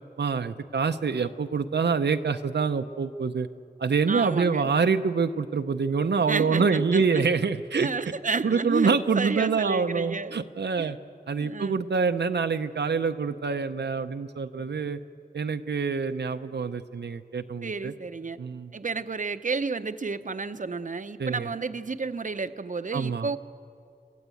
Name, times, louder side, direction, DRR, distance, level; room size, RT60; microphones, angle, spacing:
voice 1, 0.2-3.5 3.8-7.9 8.4-11.0 11.3-15.0 15.3-17.9 18.4-18.7 21.2-21.5 22.9-23.3, right 5 dB, 80° right, 8 dB, 0.7 m, -26 dB
voice 2, 4.1-4.7 6.3-7.2 7.7-10.4 10.8-11.0 11.4-11.8 17.6-18.4 18.7-23.4, right 4 dB, 50° right, 11 dB, 0.8 m, -31 dB
27.5 x 15.5 x 8.4 m, 2.4 s
wide cardioid pair, 80°, 18 cm